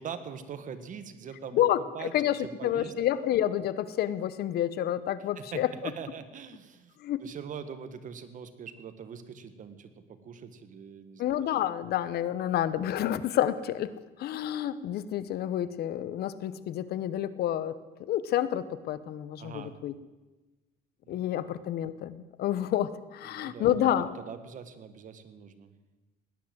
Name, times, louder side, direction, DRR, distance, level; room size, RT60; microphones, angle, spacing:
voice 1, 0.0-1.6 1.9-2.1 2.4-2.9 5.3-11.5 19.4-19.7 21.0-21.2 23.2-25.7, right 7 dB, 50° right, 10 dB, 1.6 m, -43 dB
voice 2, 1.5-5.7 7.0-7.2 11.2-13.9 14.2-17.7 18.1-19.9 21.1-24.1, left 11 dB, 70° left, 15 dB, 1.0 m, -29 dB
17.5 x 10.5 x 7.9 m, 1.2 s
cardioid pair, 110°, 17 cm